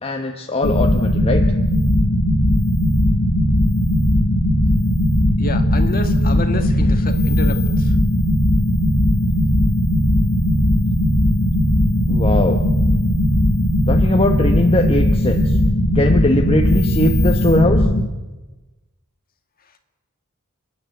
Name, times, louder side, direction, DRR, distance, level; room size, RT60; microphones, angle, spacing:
voice 1, 0.0-1.4 12.1-12.6 13.9-15.6 15.9-17.8, left 1 dB, 25° left, 3 dB, 1.1 m, -20 dB
sound 1, 0.6-18.0, left 1 dB, 80° left, 2.3 m, -17 dB
voice 2, 5.4-7.9, left 3 dB, 40° left, 6 dB, 1.9 m, -29 dB
30.0 x 10.5 x 8.3 m, 1.2 s
head